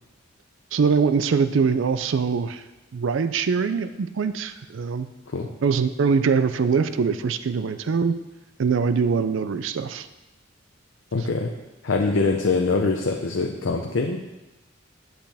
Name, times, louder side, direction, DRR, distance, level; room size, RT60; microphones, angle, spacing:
voice 1, 0.7-2.6 2.9-5.1 5.6-8.2 8.6-10.1, right 5 dB, 70° right, 11 dB, 0.4 m, -23 dB
voice 2, 11.1-11.5 11.8-14.2, left 3 dB, 70° left, 3 dB, 0.6 m, -23 dB
8.9 x 7.7 x 3.4 m, 1.1 s
head